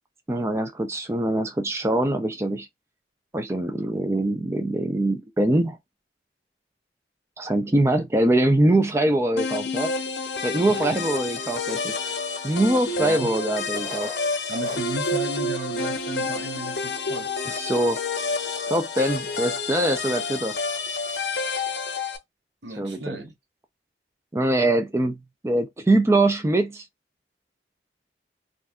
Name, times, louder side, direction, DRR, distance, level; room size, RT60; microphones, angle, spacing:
voice 1, 0.3-2.7 3.3-5.8 7.4-9.9 10.4-11.9 12.4-14.1 17.4-18.0 18.7-20.5 22.8-23.2 24.3-26.8, right 1 dB, 15° right, 0.4 m, -23 dB
sound 1, 9.4-22.2, left 3 dB, 80° left, 0.7 m, -29 dB
sound 2, 11.7-12.1 12.9-13.0 13.7-15.2 15.5-15.6 15.8-16.0 16.5-16.6 17.2-17.6, left 1 dB, 35° right, 1.4 m, -39 dB
voice 2, 13.0-13.3 14.5-17.3 22.6-23.3, right 2 dB, 85° right, 0.9 m, -34 dB
2.6 x 2.3 x 3.4 m
head